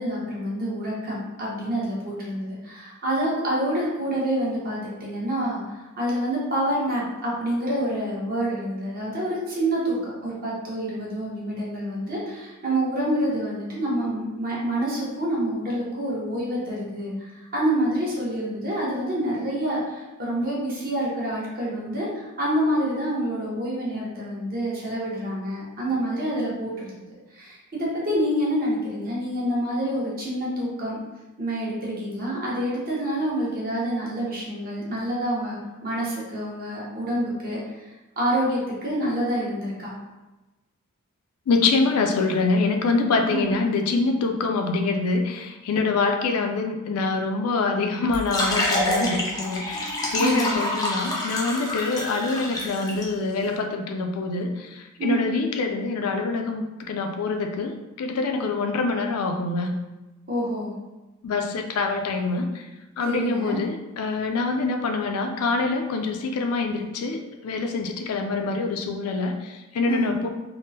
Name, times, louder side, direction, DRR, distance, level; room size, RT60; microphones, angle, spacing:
voice 1, 0.0-5.6 6.0-26.9 27.3-31.0 31.4-37.6 38.2-39.9 43.3-43.5 50.2-50.5 55.0-55.3 60.3-60.7 63.0-63.6 69.9-70.2, right 1 dB, 40° right, -5 dB, 0.9 m, -27 dB
voice 2, 41.5-59.7 61.2-62.7 63.0-70.2, left 3 dB, 70° left, 4 dB, 0.4 m, -25 dB
sound 1, 48.1-53.0, left 1 dB, 15° left, 0.5 m, -27 dB
3.5 x 2.0 x 2.7 m, 1.1 s
head